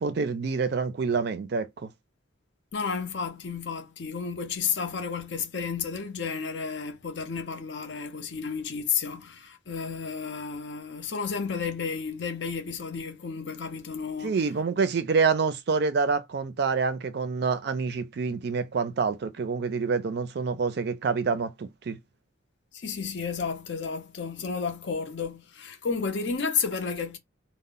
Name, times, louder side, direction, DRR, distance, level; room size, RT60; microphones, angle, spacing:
voice 1, 0.0-1.9 14.2-22.0, right 5 dB, 55° right, 0.4 m, -27 dB
voice 2, 2.7-14.4 22.7-27.2, left 5 dB, 60° left, 0.6 m, -32 dB
2.0 x 2.0 x 3.7 m
head